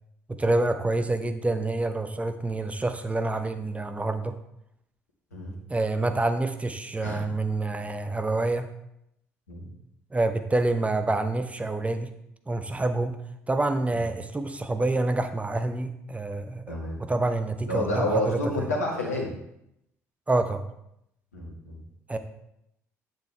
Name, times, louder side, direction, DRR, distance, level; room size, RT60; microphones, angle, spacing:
voice 1, 0.4-4.3 5.7-8.7 10.1-12.1 12.5-13.2 13.5-16.6 17.0-18.7 20.3-20.6 22.1-22.2, right 2 dB, 15° right, 8 dB, 0.8 m, -27 dB
voice 2, 16.7-17.0 17.7-19.3 21.3-21.8, left 1 dB, 80° left, -2 dB, 1.9 m, -29 dB
9.2 x 7.6 x 3.4 m, 0.79 s
figure-of-eight pair, 50°, 8 cm